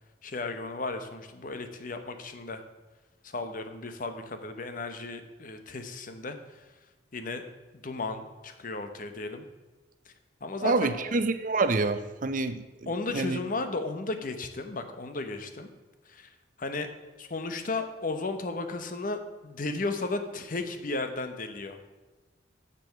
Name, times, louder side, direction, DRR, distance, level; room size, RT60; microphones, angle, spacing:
voice 1, 0.2-2.6 3.2-6.7 7.1-7.4 7.8-9.4 10.4-11.1 12.9-15.7 16.1-16.3 16.6-16.9 17.2-21.8, left 3 dB, 50° left, 8 dB, 0.9 m, -34 dB
voice 2, 10.6-13.4, right 3 dB, 45° right, 10 dB, 0.6 m, -27 dB
7.6 x 7.0 x 6.4 m, 1.2 s
head